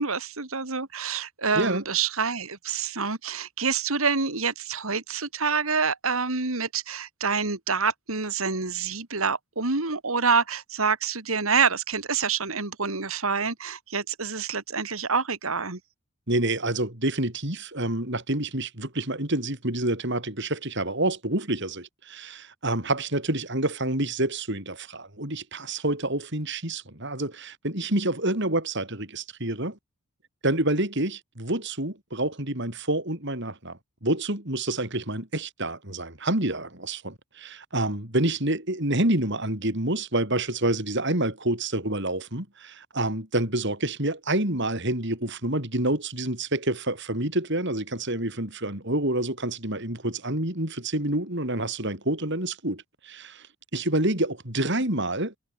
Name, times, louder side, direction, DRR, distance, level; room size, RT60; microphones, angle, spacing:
voice 1, 0.0-15.8, right 5 dB, 75° right, 2.8 m, -27 dB
voice 2, 16.3-29.8 30.4-53.5 53.7-55.3, right 1 dB, 55° right, 5.6 m, -28 dB
head